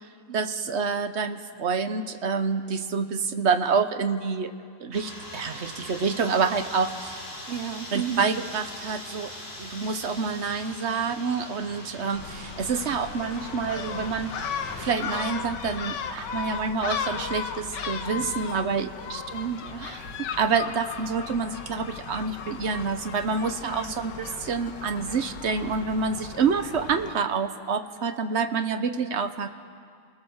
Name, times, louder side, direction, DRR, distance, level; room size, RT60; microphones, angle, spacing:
voice 1, 0.3-4.5 4.8-7.2 7.9-9.3 9.6-14.3 14.8-18.9 20.4-29.5, right 5 dB, 45° right, 8 dB, 0.9 m, -27 dB
sound 1, 4.9-14.9, left 1 dB, 35° left, 4.2 m, -41 dB
voice 2, 7.5-8.2 19.0-20.3 23.6-24.0, right 9 dB, 85° right, 10 dB, 0.5 m, -34 dB
Gull seagull, 12.1-27.2, left 6 dB, 60° left, 1.6 m, -36 dB
29.0 x 19.5 x 7.2 m, 2.2 s
omnidirectional pair, 2.2 m